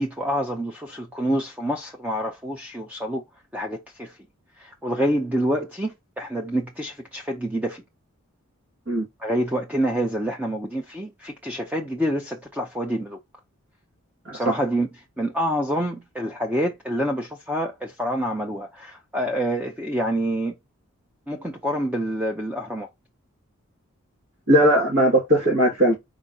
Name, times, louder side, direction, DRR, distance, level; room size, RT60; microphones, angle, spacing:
voice 1, 0.0-3.2 3.5-4.2 4.6-7.8 9.2-13.2 14.3-14.9 15.2-20.5 21.3-22.9, equal, 5° right, 0.5 m, -27 dB
voice 2, 24.5-26.0, right 1 dB, 60° right, 1.8 m, -19 dB
5.0 x 3.9 x 2.6 m
head